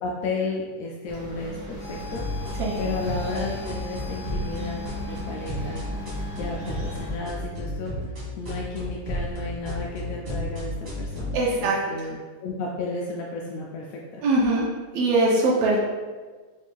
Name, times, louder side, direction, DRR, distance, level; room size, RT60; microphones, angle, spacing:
voice 1, 0.0-2.3 2.8-5.9 6.4-7.9 8.4-14.0, left 3 dB, 80° left, -2 dB, 1.6 m, -33 dB
sound 1, 1.1-7.2, right 1 dB, 65° right, 1.2 m, -39 dB
sound 2, 1.8-7.1, left 3 dB, 65° left, 1.3 m, -42 dB
sound 3, 2.0-11.4, left 1 dB, 45° right, 0.7 m, -33 dB
voice 2, 11.3-12.1 14.2-14.7 14.9-15.8, right 2 dB, 90° right, -4 dB, 1.3 m, -22 dB
5.1 x 2.5 x 3.5 m, 1.4 s
omnidirectional pair, 3.5 m